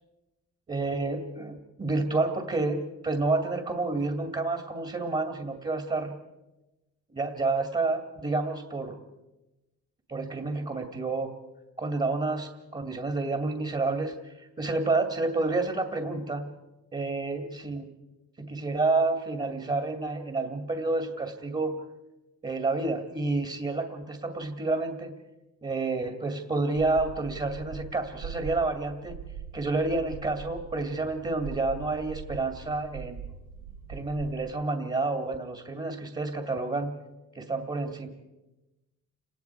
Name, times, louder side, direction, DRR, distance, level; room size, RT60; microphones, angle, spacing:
voice 1, 0.7-6.2 7.1-9.0 10.1-11.3 11.8-16.5 16.9-17.9 18.4-21.8 22.4-25.1 25.6-29.1 29.5-33.2 33.9-37.0 37.3-38.1, right 3 dB, 25° right, 4 dB, 2.4 m, -29 dB
sound 1, 26.8-34.3, right 6 dB, 85° right, 2.2 m, -42 dB
29.5 x 19.0 x 4.7 m, 1.0 s
cardioid pair, 90°, 30 cm